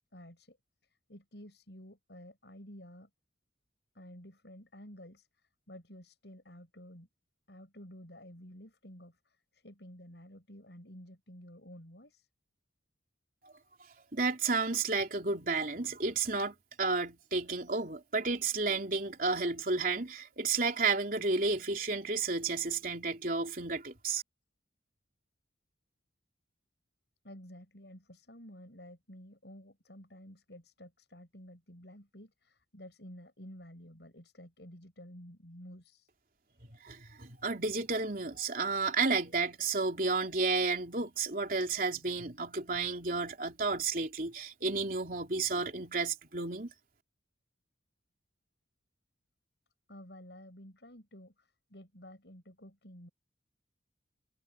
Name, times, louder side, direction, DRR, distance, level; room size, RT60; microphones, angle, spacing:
voice 1, 0.1-0.6 0.8-3.1 3.9-7.1 7.5-12.3 27.2-36.1 49.9-53.1, equal, 75° left, 7.4 m, -52 dB
voice 2, 14.1-24.2 36.8-46.7, right 4 dB, 50° right, 3.5 m, -32 dB
head